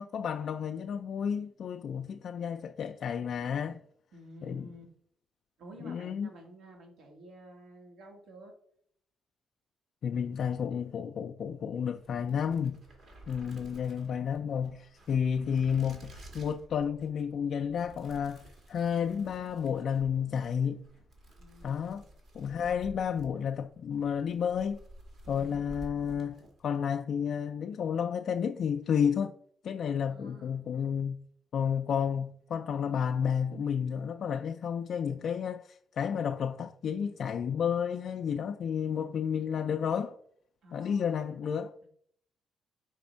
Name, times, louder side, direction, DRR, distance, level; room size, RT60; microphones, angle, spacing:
voice 1, 0.0-3.8 4.4-4.7 5.8-6.3 10.0-12.8 13.3-18.4 18.7-20.8 21.6-22.0 22.3-24.8 25.3-29.3 29.6-31.2 31.5-40.2 40.7-41.7, left 7 dB, 60° left, 0.3 m, -31 dB
voice 2, 4.1-4.8 5.6-8.5 13.3-14.1 21.4-22.1 25.2-25.9 30.0-30.6 40.6-41.4 41.8-41.9, right 1 dB, 80° right, 1.9 m, -52 dB
sound 1, 11.9-26.9, right 1 dB, 55° right, 1.8 m, -52 dB
5.0 x 3.5 x 5.3 m
cardioid pair, 90°, 0 cm